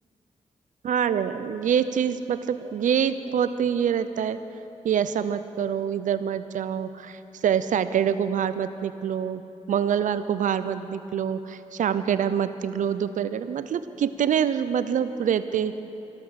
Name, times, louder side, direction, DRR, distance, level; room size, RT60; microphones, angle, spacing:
voice 1, 0.8-4.4 4.8-9.4 9.7-15.8, right 8 dB, 85° right, 13 dB, 0.5 m, -25 dB
13.5 x 13.0 x 6.4 m, 2.9 s
cardioid pair, 55°, 13 cm